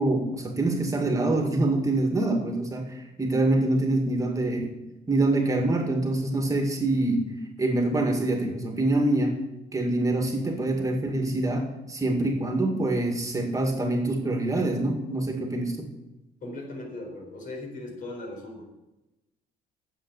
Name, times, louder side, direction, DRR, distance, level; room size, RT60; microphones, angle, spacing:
voice 1, 0.0-4.7 5.1-7.2 7.6-9.3 9.7-15.9, right 2 dB, 20° right, 2 dB, 2.2 m, -25 dB
voice 2, 16.4-18.6, left 2 dB, 55° left, 2 dB, 4.3 m, -38 dB
10.0 x 7.6 x 8.2 m, 0.96 s
cardioid pair, 110°, 17 cm